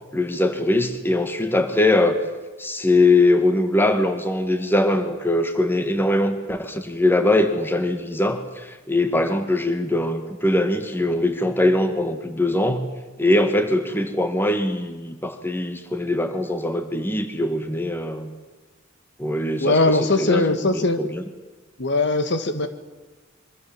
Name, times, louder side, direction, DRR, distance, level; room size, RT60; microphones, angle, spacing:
voice 1, 0.1-2.2 2.6-12.9 13.2-18.3 19.2-20.5 20.7-21.2, left 2 dB, 10° left, 7 dB, 2.1 m, -21 dB
voice 2, 19.6-21.0 21.8-22.7, left 2 dB, 60° left, 9 dB, 1.9 m, -20 dB
26.5 x 24.0 x 7.6 m, 1.3 s
head